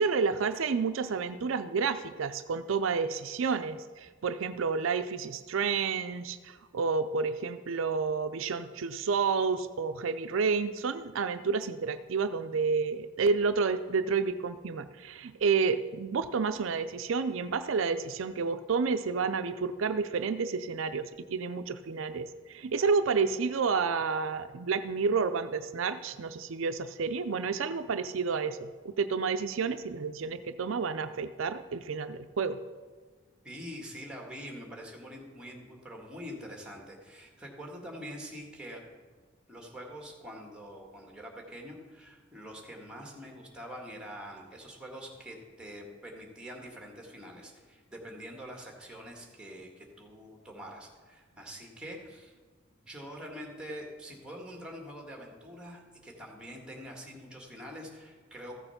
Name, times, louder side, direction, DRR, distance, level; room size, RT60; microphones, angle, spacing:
voice 1, 0.0-32.6, right 5 dB, 75° right, 10 dB, 0.5 m, -30 dB
voice 2, 33.4-38.8 39.5-52.3 52.7-58.6, equal, 5° right, 0 dB, 1.8 m, -45 dB
14.5 x 6.8 x 5.8 m, 1.4 s
head